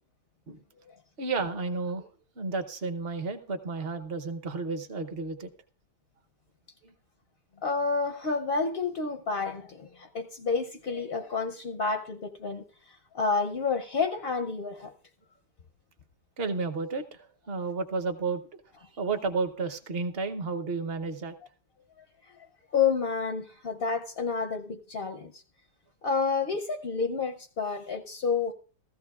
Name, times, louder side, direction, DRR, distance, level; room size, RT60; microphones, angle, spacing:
voice 1, 1.2-2.1 2.4-5.5 6.8-6.9 16.4-18.4 18.8-21.3, right 4 dB, 45° right, 0.9 m, -32 dB
voice 2, 7.6-12.6 13.1-14.9 22.7-25.4 26.0-28.5, left 5 dB, 60° left, 0.6 m, -29 dB
15.5 x 14.5 x 2.4 m
omnidirectional pair, 1.8 m